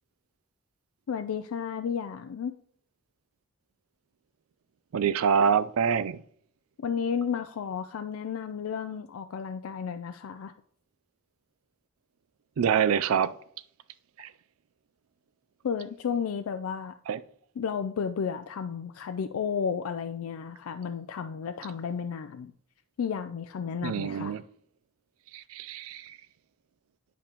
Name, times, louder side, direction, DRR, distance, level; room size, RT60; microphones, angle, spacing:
voice 1, 1.1-2.6 6.8-10.5 15.6-16.9 17.6-22.5 23.0-24.3, left 7 dB, 90° left, 0.4 m, -32 dB
voice 2, 4.9-6.2 12.6-13.3 14.2-14.3 17.1-17.2 23.8-24.4 25.3-26.2, right 7 dB, 90° right, 0.4 m, -26 dB
10.5 x 5.1 x 2.9 m
head